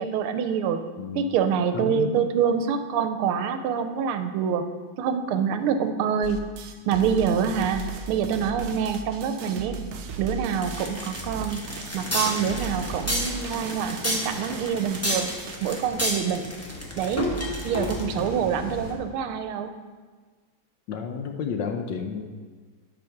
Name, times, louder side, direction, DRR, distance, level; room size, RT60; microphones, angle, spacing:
voice 1, 0.0-0.8 1.1-4.6 5.0-6.4 6.9-9.8 10.2-11.6 11.9-15.3 15.6-16.5 17.0-17.2 17.6-19.7, right 7 dB, 80° right, 9 dB, 1.5 m, -26 dB
voice 2, 1.0-1.3 1.7-2.2 20.9-22.2, left 6 dB, 70° left, 5 dB, 1.2 m, -31 dB
sound 1, 6.2-15.7, right 6 dB, 65° right, 1.0 m, -37 dB
sound 2, 10.6-18.3, equal, 10° left, 0.7 m, -30 dB
sound 3, 11.9-18.9, left 3 dB, 90° left, 2.3 m, -41 dB
10.5 x 5.1 x 5.8 m, 1.4 s
omnidirectional pair, 2.3 m